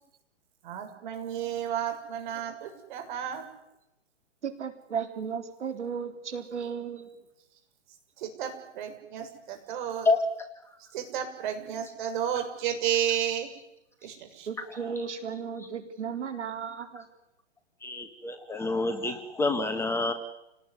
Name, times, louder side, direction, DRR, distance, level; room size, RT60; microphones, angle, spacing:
voice 1, 0.6-3.4 8.2-10.1 10.9-13.5 14.0-14.5, right 9 dB, 40° right, 5 dB, 7.1 m, -32 dB
voice 2, 4.4-7.1 14.5-17.1, right 6 dB, 70° right, 6 dB, 4.2 m, -35 dB
voice 3, 17.8-20.1, left 3 dB, 5° left, 6 dB, 1.5 m, -27 dB
30.0 x 18.5 x 9.8 m, 0.89 s
hypercardioid pair, 145°, 36 cm